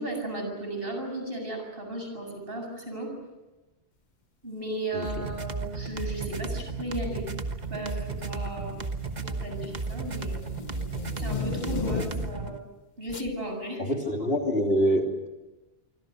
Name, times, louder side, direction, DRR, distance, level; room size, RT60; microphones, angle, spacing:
voice 1, 0.0-3.1 4.4-7.3 7.7-8.8 9.2-10.4 11.2-12.6 13.0-13.8, right 1 dB, 60° right, 3 dB, 7.5 m, -35 dB
voice 2, 4.9-5.3 13.8-15.3, equal, 65° left, 2 dB, 3.5 m, -26 dB
sound 1, 5.0-12.6, right 4 dB, 40° right, 1.4 m, -34 dB
sound 2, 6.2-6.5 7.4-7.9 8.2-12.5 13.1-13.3, left 6 dB, 45° left, 1.1 m, -36 dB
26.5 x 26.0 x 6.6 m, 1.1 s
omnidirectional pair, 1.1 m